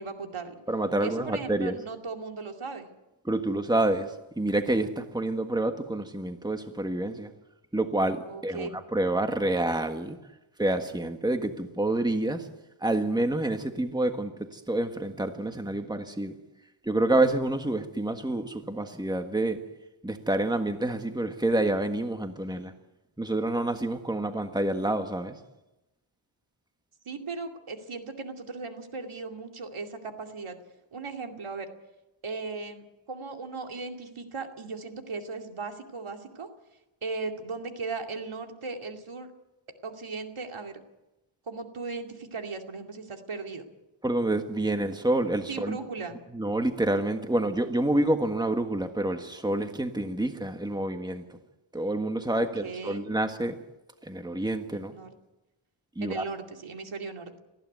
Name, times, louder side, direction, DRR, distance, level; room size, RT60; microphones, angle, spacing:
voice 1, 0.0-0.6 1.0-2.9 8.3-8.7 27.1-30.6 30.9-31.7 32.2-36.5 37.0-39.3 39.8-40.8 41.5-43.7 45.5-46.2 52.3-53.0 54.7-55.1 56.0-57.3, right 4 dB, 75° right, 4 dB, 2.6 m, -37 dB
voice 2, 0.7-1.8 3.2-7.3 7.7-10.2 10.6-12.5 12.8-16.3 16.8-19.6 20.0-22.7 23.2-25.3 44.0-45.8 46.3-51.2 51.7-53.5 54.0-54.9 55.9-56.2, right 1 dB, 10° right, 6 dB, 1.6 m, -28 dB
19.0 x 15.0 x 9.4 m, 0.98 s
wide cardioid pair, 95°, 50 cm